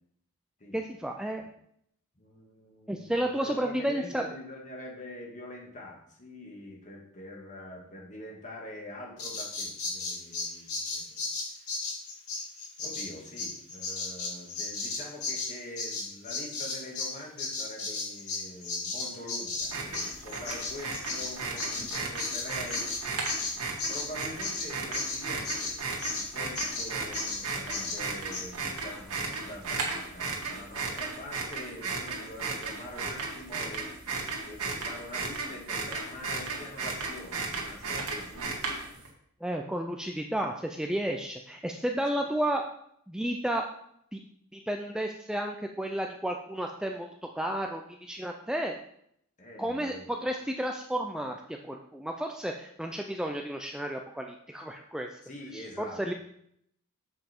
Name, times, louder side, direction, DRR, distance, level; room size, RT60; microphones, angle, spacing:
voice 1, 0.7-1.4 2.9-4.2 39.4-42.6 43.1-43.7 44.1-44.2 44.5-48.8 49.6-55.2 55.5-55.6 56.0-56.1, right 1 dB, 5° right, 3 dB, 0.4 m, -32 dB
voice 2, 2.2-11.2 12.8-23.2 23.5-25.7 26.1-33.9 34.4-38.6 42.1-42.3 49.4-50.3 55.2-56.1, left 1 dB, 35° left, -1 dB, 1.9 m, -45 dB
Bird vocalization bird call bird song, 9.2-17.1 17.4-26.3 26.6-26.9 27.1-27.4 27.7-28.0 28.3-28.4, left 3 dB, 75° left, 2.1 m, -34 dB
sound 1, 19.6-39.1, right 4 dB, 75° right, 1.7 m, -35 dB
7.4 x 5.2 x 4.5 m, 0.71 s
head